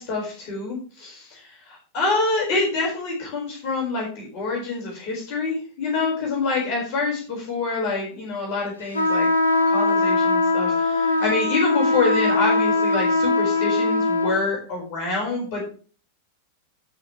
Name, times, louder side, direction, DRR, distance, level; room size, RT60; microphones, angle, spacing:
voice 1, 0.0-9.3 9.7-15.7, left 3 dB, 45° left, -1 dB, 4.7 m, -26 dB
sound 1, 8.9-14.4, left 3 dB, 75° left, 1.6 m, -21 dB
16.5 x 5.6 x 3.1 m, 0.39 s
figure-of-eight pair, 90°, 0 cm